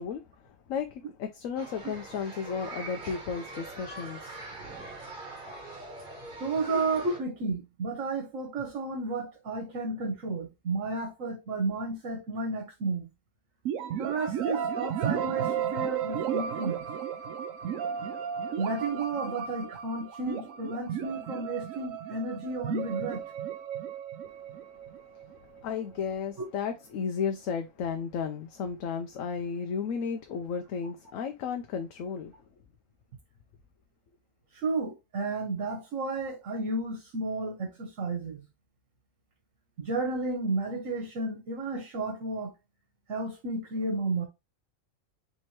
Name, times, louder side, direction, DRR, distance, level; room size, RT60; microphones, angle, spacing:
voice 1, 0.0-4.4 6.7-6.8 24.2-24.4 25.4-32.3, left 6 dB, 75° left, 1.0 m, -34 dB
sound 1, 1.6-7.2, right 2 dB, 40° right, 1.7 m, -43 dB
voice 2, 6.4-13.1 14.0-16.8 18.6-23.2 34.5-38.4 39.8-42.5 43.1-44.3, right 3 dB, 70° right, 1.5 m, -32 dB
sound 2, 13.6-25.4, right 8 dB, 85° right, 1.0 m, -34 dB
3.5 x 3.1 x 4.3 m
omnidirectional pair, 1.4 m